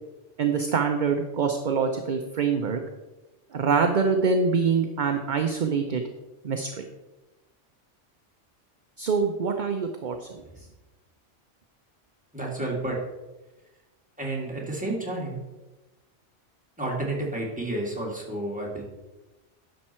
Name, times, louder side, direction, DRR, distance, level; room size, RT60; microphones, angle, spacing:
voice 1, 0.4-2.8 3.5-6.0 6.4-6.8 9.0-10.3, right 5 dB, 45° right, 5 dB, 0.7 m, -25 dB
voice 2, 12.3-13.0 14.2-15.4 16.8-18.8, right 2 dB, 5° right, -3 dB, 2.2 m, -30 dB
10.5 x 6.5 x 4.4 m, 1.1 s
omnidirectional pair, 1.2 m